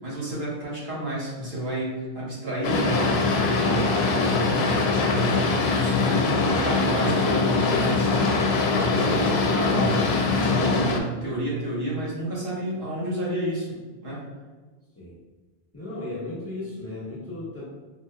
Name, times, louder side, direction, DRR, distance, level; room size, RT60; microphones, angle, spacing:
voice 1, 0.0-13.8 14.0-14.2, right 1 dB, 75° right, -7 dB, 1.4 m, -30 dB
Boat Water vehicle, 2.6-11.0, left 4 dB, 85° left, 0.8 m, -22 dB
voice 2, 15.7-17.6, left 2 dB, 15° left, -9 dB, 1.1 m, -35 dB
4.5 x 2.9 x 2.2 m, 1.3 s
omnidirectional pair, 1.0 m